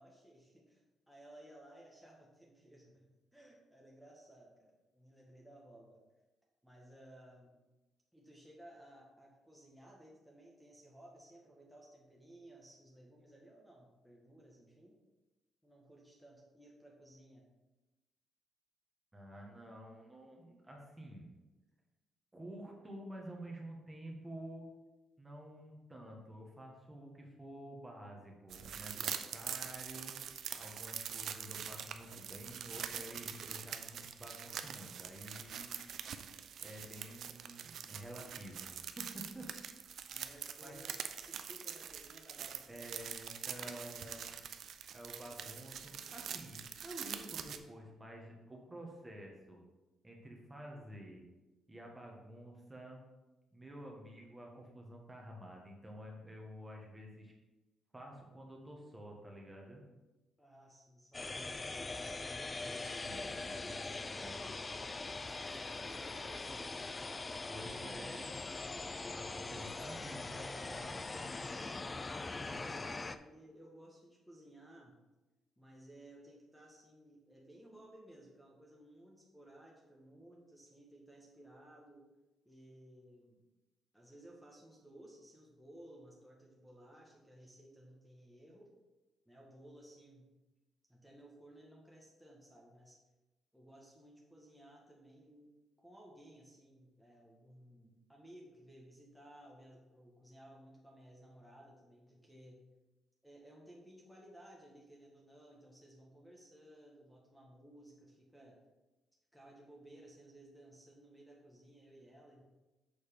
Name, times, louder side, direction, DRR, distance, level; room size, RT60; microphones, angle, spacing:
voice 1, 0.0-3.1 3.3-6.0 6.6-7.5 8.1-15.0 15.6-17.5 40.1-43.0 43.5-43.7 60.4-63.1 63.6-68.3 72.2-74.9 75.6-82.0 82.4-83.4 83.9-88.7 89.2-90.3 90.9-93.0 93.5-95.5 95.8-102.6 103.2-108.6 109.3-112.4, right 1 dB, ahead, -2 dB, 1.4 m, -58 dB
voice 2, 19.1-21.3 22.3-24.7 25.2-30.2 30.6-35.7 36.6-39.5 40.6-40.7 42.7-44.4 44.9-49.6 50.0-51.2 51.7-53.0 53.5-57.3 57.9-59.8 63.0-64.3 67.5-68.3 69.1-71.3 72.3-72.9, right 1 dB, 15° right, 0 dB, 1.5 m, -50 dB
sound 1, 28.5-47.6, right 8 dB, 65° right, 0.5 m, -44 dB
sound 2, 61.1-73.2, left 3 dB, 25° left, 0.3 m, -42 dB
6.9 x 4.0 x 5.2 m, 1.1 s
cardioid pair, 90°, 0 cm